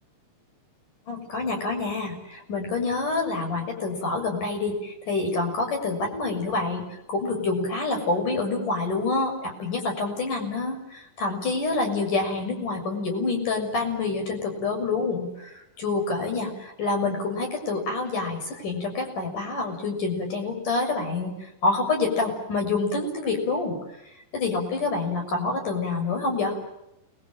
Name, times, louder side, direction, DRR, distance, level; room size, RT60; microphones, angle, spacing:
voice 1, 1.1-23.8 24.3-26.6, left 3 dB, 50° left, 3 dB, 8.0 m, -27 dB
29.5 x 22.0 x 8.9 m, 0.84 s
omnidirectional pair, 4.7 m